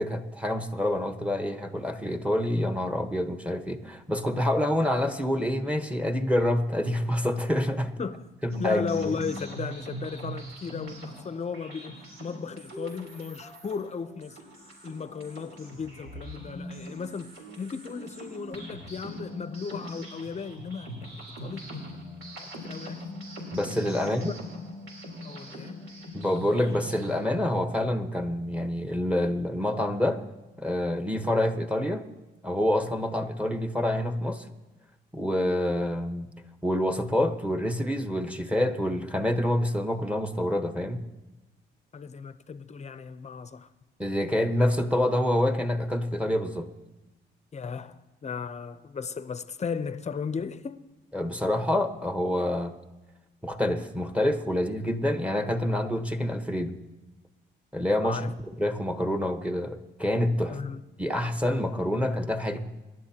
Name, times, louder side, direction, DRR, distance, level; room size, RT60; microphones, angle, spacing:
voice 1, 0.0-7.9 8.4-9.1 23.5-24.4 26.1-30.2 30.6-32.0 32.4-34.5 35.1-36.3 36.6-41.0 44.0-46.7 51.1-52.7 53.4-56.8 57.7-60.6 61.0-62.7, left 1 dB, 5° right, 1.2 m, -27 dB
voice 2, 8.0-8.3 8.6-14.4 14.8-21.6 22.4-23.1 24.0-24.3 25.2-25.8 41.9-43.7 47.5-50.8 58.0-58.3 60.5-60.8, left 5 dB, 35° left, 0.7 m, -36 dB
sound 1, 8.5-27.4, equal, 80° right, 3.8 m, -41 dB
27.0 x 11.5 x 2.9 m
cardioid pair, 90°, 20 cm